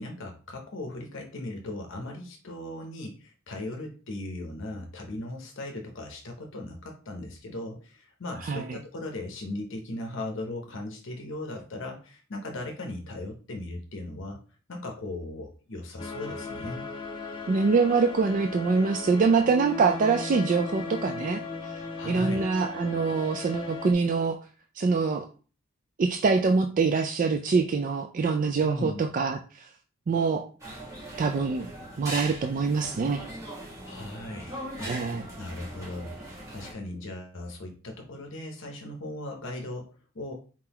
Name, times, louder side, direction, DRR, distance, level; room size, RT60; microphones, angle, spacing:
voice 1, 0.0-14.4 14.7-16.9 22.0-22.4 28.6-29.0 33.8-34.9 35.4-36.2 36.5-39.9 40.1-40.3, left 1 dB, 65° left, 2 dB, 0.8 m, -38 dB
voice 2, 8.4-8.8 17.5-24.4 24.8-25.3 26.0-29.7 30.1-30.5 31.2-31.7 32.0-33.2 34.8-35.3, right 4 dB, 40° right, 5 dB, 0.3 m, -25 dB
sound 1, 16.0-23.9, left 3 dB, 25° left, 0.8 m, -37 dB
sound 2, 30.6-36.7, right 1 dB, 15° right, 1.4 m, -40 dB
4.5 x 3.8 x 2.9 m, 0.37 s
head